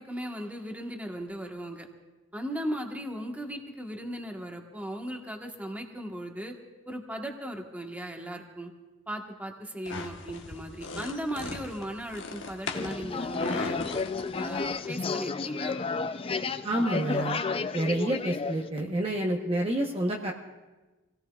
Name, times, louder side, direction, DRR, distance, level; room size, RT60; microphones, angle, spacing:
voice 1, 0.0-1.9 2.3-6.6 6.9-8.7 9.1-13.8 14.4-15.8, equal, 10° right, 2 dB, 1.3 m, -37 dB
sound 1, 9.8-14.9, left 3 dB, 60° left, 1.2 m, -39 dB
sound 2, 12.7-18.7, left 4 dB, 25° left, 0.4 m, -32 dB
voice 2, 16.6-17.4 17.7-20.3, right 1 dB, 30° right, 0 dB, 1.0 m, -28 dB
26.5 x 17.5 x 2.4 m, 1.2 s
head